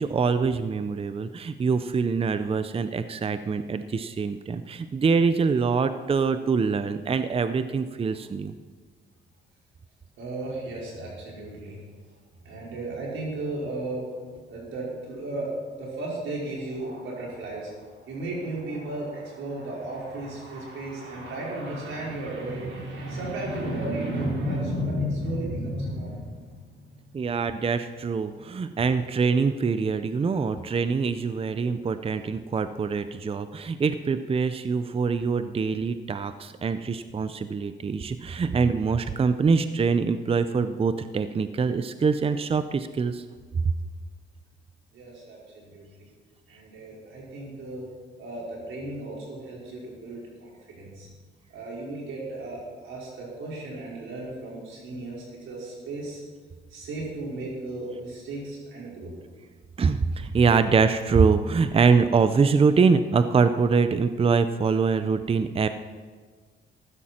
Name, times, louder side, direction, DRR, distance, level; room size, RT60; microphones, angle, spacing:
voice 1, 0.0-8.5 27.1-43.2 43.6-43.7 59.8-65.7, right 5 dB, 30° right, 11 dB, 0.6 m, -24 dB
voice 2, 10.2-11.8 12.4-14.0 14.3-15.5 15.8-26.6 26.9-27.0 44.9-45.4 45.7-46.0 46.5-47.8 48.2-51.1 51.5-56.2 56.7-59.1, right 1 dB, 80° right, -4 dB, 5.1 m, -34 dB
14.5 x 12.5 x 4.4 m, 1.5 s
cardioid pair, 90°, 20 cm